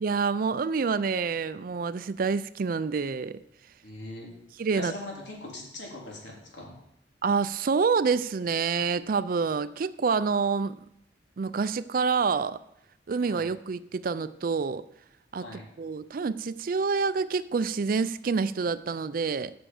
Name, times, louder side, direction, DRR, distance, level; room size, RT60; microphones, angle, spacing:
voice 1, 0.0-3.4 4.6-4.9 7.2-10.8 11.4-12.6 13.1-14.8 15.3-15.5 15.8-19.5, right 5 dB, 50° right, 15 dB, 0.4 m, -27 dB
voice 2, 3.8-4.3 4.7-6.8 13.2-13.5 15.4-15.7, left 2 dB, 80° left, -2 dB, 3.3 m, -41 dB
8.8 x 6.1 x 7.1 m, 0.80 s
head